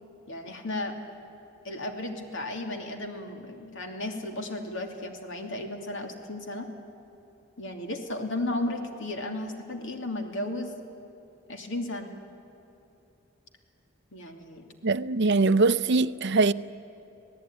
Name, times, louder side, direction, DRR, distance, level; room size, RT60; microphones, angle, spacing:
voice 1, 0.3-0.9 1.6-6.7 7.6-10.7 11.5-12.1 14.1-14.6, left 1 dB, 65° left, 2.7 m, -34 dB
voice 2, 14.8-16.5, right 3 dB, 60° right, 0.6 m, -22 dB
27.0 x 17.5 x 9.7 m
head